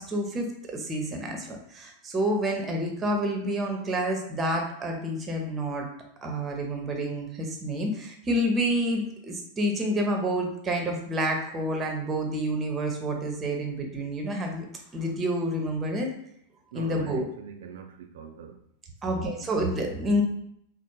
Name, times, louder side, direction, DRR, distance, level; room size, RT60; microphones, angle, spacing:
voice 1, 0.0-5.9 6.2-14.6 14.9-16.1 16.7-17.3 19.0-20.2, right 1 dB, 20° right, 2 dB, 0.7 m, -28 dB
voice 2, 16.7-18.6 19.1-19.6, right 7 dB, 60° right, 4 dB, 0.3 m, -43 dB
4.1 x 2.0 x 3.1 m, 0.72 s
figure-of-eight pair, 90°, 0 cm